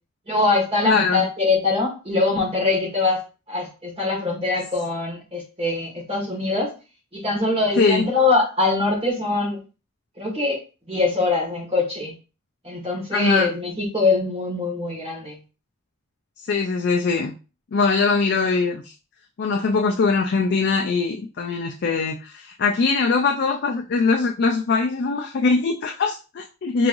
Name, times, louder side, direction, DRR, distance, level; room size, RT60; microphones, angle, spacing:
voice 1, 0.3-3.2 3.5-6.7 7.1-9.6 10.2-10.6 10.9-12.1 12.6-15.4, left 3 dB, 30° right, -2 dB, 1.8 m, -23 dB
voice 2, 0.8-1.2 7.8-8.0 13.1-13.5 16.4-17.3 17.7-18.9 19.4-26.9, left 4 dB, 55° left, 2 dB, 0.4 m, -22 dB
4.7 x 3.1 x 2.6 m, 0.33 s
head